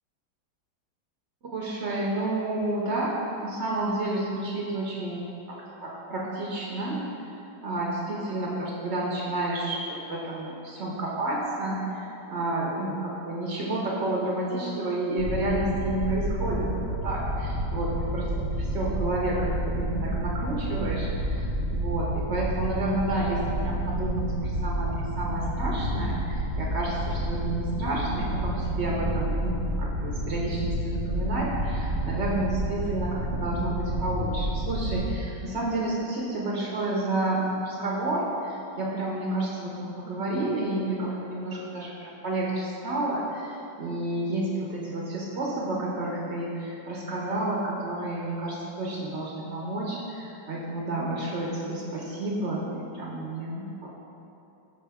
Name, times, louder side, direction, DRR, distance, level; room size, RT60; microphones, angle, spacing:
voice 1, 1.4-7.0 7.6-18.3 18.6-21.4 21.7-54.0, right 2 dB, 90° right, -3 dB, 0.6 m, -30 dB
sound 1, 15.2-35.1, right 1 dB, 55° right, 1.5 m, -30 dB
6.6 x 5.0 x 3.4 m, 2.9 s
omnidirectional pair, 2.1 m